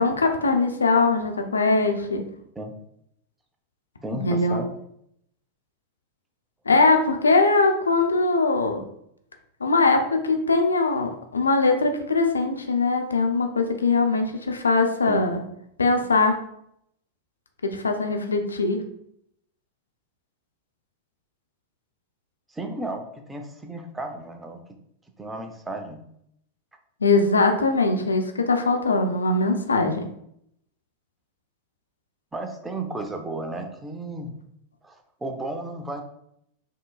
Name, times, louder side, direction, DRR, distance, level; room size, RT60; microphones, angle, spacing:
voice 1, 0.0-2.2 4.1-4.6 6.7-8.8 9.6-15.4 15.8-16.3 17.7-18.8 27.0-30.1, left 3 dB, 75° left, 5 dB, 0.6 m, -21 dB
voice 2, 4.0-4.7 15.1-15.2 22.5-24.6 25.2-26.0 32.3-34.3 34.8-36.0, right 2 dB, 10° right, 4 dB, 0.7 m, -33 dB
5.5 x 3.8 x 2.4 m, 0.72 s
figure-of-eight pair, 90°, 0 cm